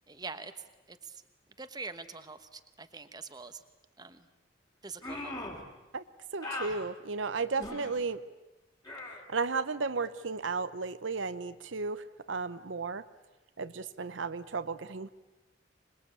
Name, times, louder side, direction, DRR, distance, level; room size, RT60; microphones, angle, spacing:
voice 1, 0.1-0.5 0.9-1.2 1.6-3.6 4.0-4.2 4.8-5.4, right 4 dB, 20° right, 10 dB, 1.1 m, -44 dB
sound 1, 5.0-5.7 6.4-6.8 7.6-8.0 8.9-9.2, left 2 dB, 20° left, 3.5 m, -39 dB
voice 2, 6.3-8.2 9.3-13.0 13.6-15.1, right 4 dB, 75° right, 12 dB, 0.8 m, -34 dB
26.0 x 21.0 x 8.5 m, 1.1 s
head